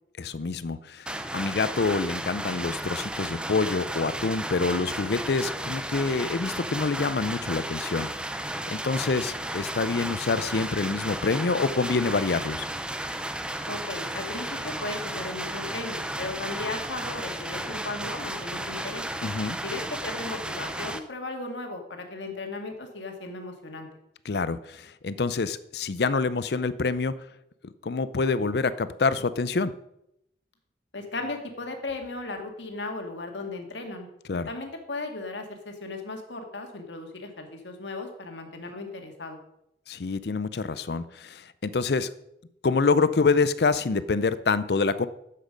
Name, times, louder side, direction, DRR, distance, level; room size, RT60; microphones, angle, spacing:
voice 1, 0.2-8.1 8.7-12.7 19.2-19.6 24.3-27.1 27.8-29.7 34.3-34.5 39.9-42.1 42.6-45.1, left 4 dB, 65° left, 15 dB, 0.5 m, -26 dB
sound 1, 1.1-21.0, right 1 dB, 5° right, 0.5 m, -34 dB
voice 2, 13.7-19.0 19.6-23.9 30.9-34.1 34.5-39.4, left 2 dB, 90° left, 4 dB, 1.8 m, -36 dB
10.5 x 7.5 x 5.1 m, 0.80 s
head